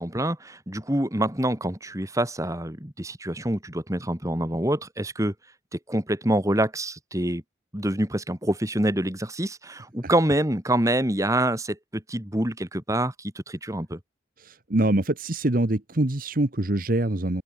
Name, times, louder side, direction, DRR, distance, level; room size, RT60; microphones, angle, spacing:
voice 1, 0.0-5.3 5.7-7.4 7.7-14.0, right 1 dB, 15° right, 3.0 m, -26 dB
voice 2, 14.4-17.4, right 1 dB, 45° right, 1.3 m, -24 dB
head